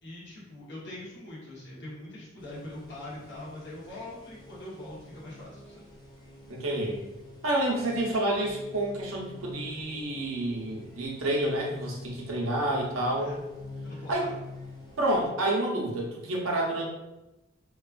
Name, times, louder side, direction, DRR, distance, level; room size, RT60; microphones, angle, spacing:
voice 1, 0.0-5.8 13.2-13.4 13.8-14.4, left 1 dB, 55° left, -6 dB, 1.0 m, -43 dB
sound 1, 2.4-15.3, left 2 dB, 20° left, 0.4 m, -47 dB
voice 2, 6.5-7.0 7.4-13.3 14.1-14.3 15.0-16.9, right 1 dB, 85° right, -2 dB, 0.7 m, -29 dB
3.0 x 2.3 x 2.4 m, 1.0 s
head